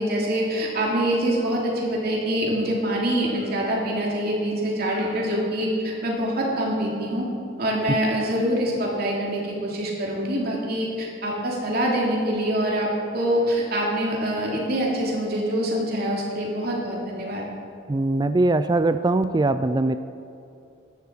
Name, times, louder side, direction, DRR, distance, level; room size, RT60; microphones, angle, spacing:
voice 1, 0.0-7.3 7.6-17.4, right 1 dB, 50° right, -2 dB, 2.9 m, -25 dB
voice 2, 17.9-20.0, right 2 dB, 20° right, 11 dB, 0.3 m, -21 dB
14.5 x 12.0 x 4.6 m, 2.7 s
head